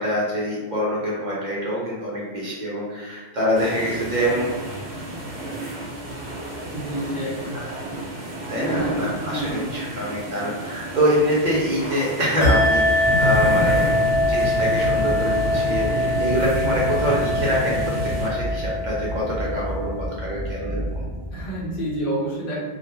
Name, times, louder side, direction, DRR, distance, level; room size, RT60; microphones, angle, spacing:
voice 1, 0.0-4.5 7.7-8.0 8.5-21.0, equal, 55° right, -6 dB, 0.6 m, -25 dB
sound 1, 3.5-18.3, equal, 85° right, 0.9 m, -30 dB
voice 2, 6.7-7.6 8.7-9.7 21.3-22.6, right 1 dB, 60° left, -6 dB, 0.9 m, -29 dB
sound 2, 12.4-20.5, left 1 dB, 85° left, 0.9 m, -23 dB
sound 3, 12.8-21.9, equal, 30° left, 0.9 m, -32 dB
2.2 x 2.1 x 2.9 m, 1.3 s
omnidirectional pair, 1.1 m